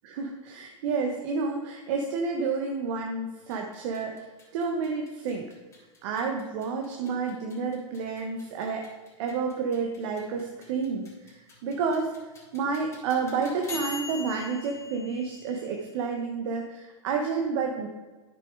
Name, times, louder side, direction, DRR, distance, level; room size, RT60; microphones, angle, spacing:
voice 1, 0.0-5.4 6.0-8.9 9.2-12.1 12.5-17.9, right 5 dB, 60° right, 1 dB, 1.2 m, -30 dB
sound 1, 3.4-16.1, left 3 dB, 20° left, 3.3 m, -45 dB
9.3 x 6.9 x 4.7 m, 1.3 s
hypercardioid pair, 120°, 16 cm